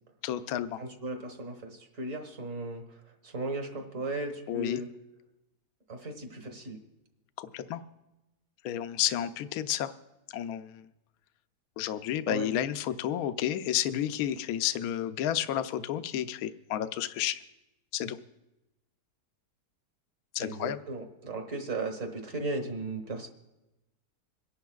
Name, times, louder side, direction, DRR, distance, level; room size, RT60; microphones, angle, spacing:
voice 1, 0.2-0.8 4.5-4.8 7.4-7.8 8.6-9.9 10.3-10.9 11.8-17.4 17.9-18.2 20.3-20.8, left 11 dB, 75° left, 11 dB, 1.0 m, -31 dB
voice 2, 0.8-3.0 3.2-4.9 5.9-6.8 12.3-12.5 20.4-23.3, right 2 dB, 55° right, 4 dB, 1.8 m, -36 dB
26.5 x 11.5 x 2.4 m, 0.97 s
omnidirectional pair, 1.7 m